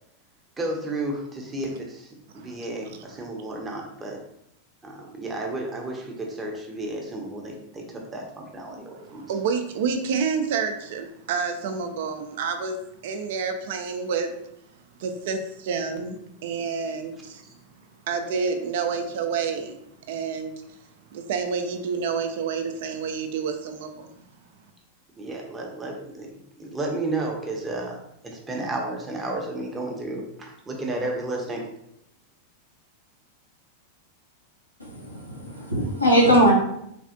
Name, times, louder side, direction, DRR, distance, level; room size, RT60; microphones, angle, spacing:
voice 1, 0.6-4.2 4.8-9.3 25.2-26.3 26.6-28.0 28.2-31.7, right 2 dB, 15° right, 0 dB, 0.6 m, -32 dB
voice 2, 9.1-12.8 13.0-14.3 15.0-17.4 18.1-19.8 20.1-20.5 21.1-24.1, right 5 dB, 55° right, 7 dB, 0.3 m, -28 dB
voice 3, 34.8-36.5, equal, 90° left, -5 dB, 0.9 m, -20 dB
3.3 x 2.4 x 2.5 m, 0.76 s
figure-of-eight pair, 90°, 0 cm